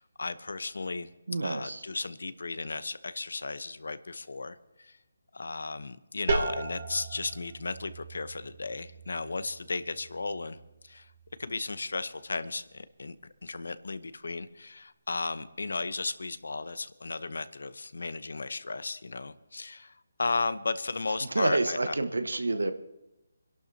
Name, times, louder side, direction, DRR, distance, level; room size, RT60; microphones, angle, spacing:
voice 1, 0.0-1.1 1.4-5.0 5.3-10.6 10.8-11.1 11.4-13.2 13.4-22.0, left 3 dB, 75° left, 14 dB, 0.9 m, -35 dB
voice 2, 1.3-1.8 21.3-22.7, right 2 dB, 85° right, 9 dB, 1.2 m, -28 dB
sound 1, 6.3-11.8, right 3 dB, 50° right, 2.0 m, -37 dB
26.5 x 11.5 x 2.8 m, 0.94 s
figure-of-eight pair, 160°, 0 cm